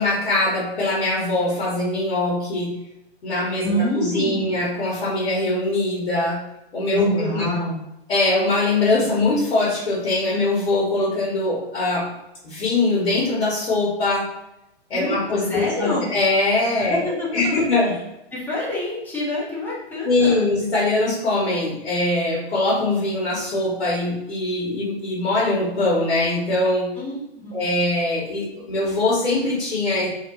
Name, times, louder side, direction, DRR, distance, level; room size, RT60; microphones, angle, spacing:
voice 1, 0.0-2.7 3.2-6.4 6.7-7.5 8.1-12.1 12.4-14.3 14.9-17.9 20.0-26.9 27.5-30.1, left 2 dB, 65° left, -6 dB, 1.0 m, -22 dB
voice 2, 3.6-4.5 6.9-7.8 14.9-15.2 15.5-16.1 16.8-17.6 18.3-20.5 27.0-27.5, left 1 dB, 5° left, -7 dB, 0.6 m, -26 dB
2.8 x 2.1 x 2.9 m, 0.87 s
figure-of-eight pair, 120°, 32 cm